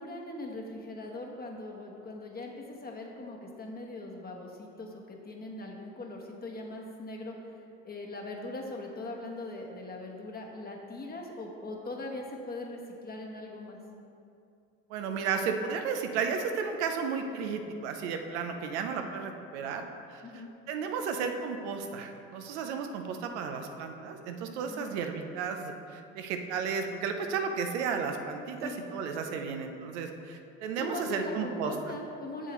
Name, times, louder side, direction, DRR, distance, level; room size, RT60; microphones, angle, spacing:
voice 1, 0.0-7.5 7.8-13.8 20.2-20.5 24.6-24.9 28.6-28.8 30.8-32.5, left 2 dB, 30° left, 0 dB, 1.1 m, -40 dB
voice 2, 14.9-20.2 20.7-31.7, right 6 dB, 90° right, 5 dB, 0.6 m, -33 dB
7.3 x 6.7 x 3.1 m, 2.6 s
supercardioid pair, 80°, 33 cm